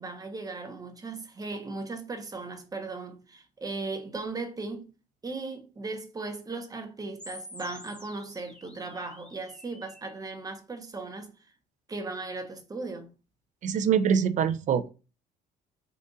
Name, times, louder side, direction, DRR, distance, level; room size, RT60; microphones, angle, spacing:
voice 1, 0.0-4.9 5.2-11.5 11.9-13.1, right 3 dB, 20° right, 0.8 m, -37 dB
sound 1, 7.2-10.2, left 1 dB, 5° left, 1.0 m, -48 dB
voice 2, 13.6-14.9, right 7 dB, 45° right, 0.5 m, -24 dB
3.8 x 2.4 x 3.9 m
cardioid pair, 110°, 17 cm